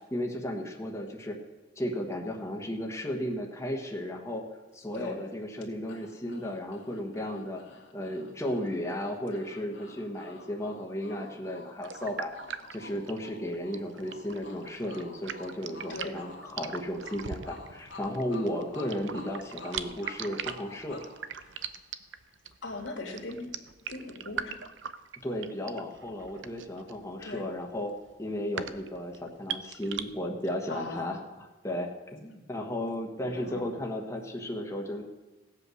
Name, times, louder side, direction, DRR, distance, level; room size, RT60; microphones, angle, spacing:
voice 1, 0.1-1.4 1.8-4.4 4.7-7.6 7.9-12.3 12.7-21.0 25.2-27.9 28.2-35.0, left 1 dB, 15° left, 1 dB, 1.3 m, -34 dB
sound 1, 5.9-22.1, left 3 dB, 70° left, 2.0 m, -51 dB
sound 2, 11.8-30.0, right 7 dB, 80° right, 0.7 m, -40 dB
voice 2, 22.6-23.5 23.9-24.7 27.2-27.4 30.7-31.2 33.3-33.7, left 2 dB, 90° left, 1 dB, 2.5 m, -39 dB
16.5 x 8.3 x 6.4 m, 1.1 s
head